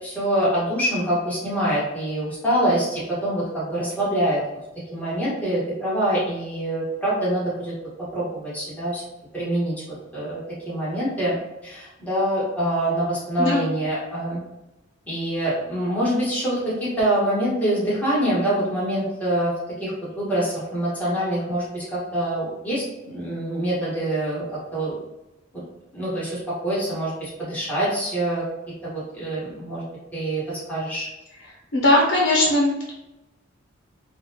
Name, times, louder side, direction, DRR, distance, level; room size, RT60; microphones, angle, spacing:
voice 1, 0.0-4.4 4.9-7.7 8.1-9.0 9.3-9.7 10.1-11.4 11.6-14.4 15.1-19.5 19.8-24.4 24.7-25.0 25.5-25.6 25.9-28.4 28.8-29.8 30.1-31.1, right 1 dB, 10° left, -10 dB, 1.4 m, -25 dB
voice 2, 31.7-32.9, left 1 dB, 90° left, -3 dB, 0.7 m, -19 dB
3.9 x 2.3 x 2.8 m, 0.99 s
head